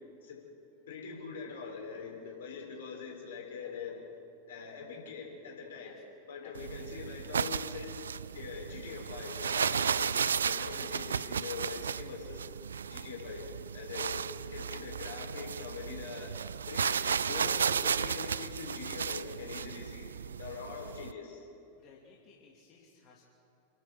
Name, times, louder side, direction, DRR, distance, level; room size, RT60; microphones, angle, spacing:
voice 1, 0.9-4.1 4.5-6.0 6.3-7.9 8.3-12.4 12.9-13.5 13.7-20.1 20.4-21.5, left 5 dB, 60° left, 0 dB, 6.0 m, -43 dB
sound 1, 6.6-21.1, right 7 dB, 70° right, 0.4 m, -34 dB
voice 2, 21.8-23.3, left 5 dB, 35° left, -3 dB, 3.0 m, -59 dB
29.5 x 12.0 x 7.8 m, 2.8 s
figure-of-eight pair, 90°, 0 cm